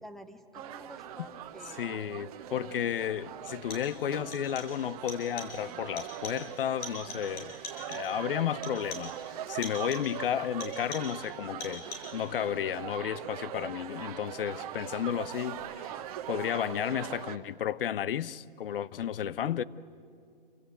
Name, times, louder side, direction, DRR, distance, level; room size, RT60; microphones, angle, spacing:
voice 1, 0.0-1.8 2.5-2.8 19.4-19.6, equal, ahead, 0.6 m, -48 dB
sound 1, 0.5-17.4, right 10 dB, 40° right, 1.2 m, -41 dB
voice 2, 1.7-7.5 7.8-16.0 16.3-19.6, left 9 dB, 70° left, 0.7 m, -33 dB
sound 2, 2.4-2.5 3.5-4.0 4.3-4.8 5.1-5.6 6.0-6.5 6.8-8.2 8.6-9.2 9.6-10.2 10.6-11.3 11.6-12.2, left 2 dB, 40° left, 6.0 m, -44 dB
27.5 x 16.0 x 8.0 m
hypercardioid pair, 145°, 29 cm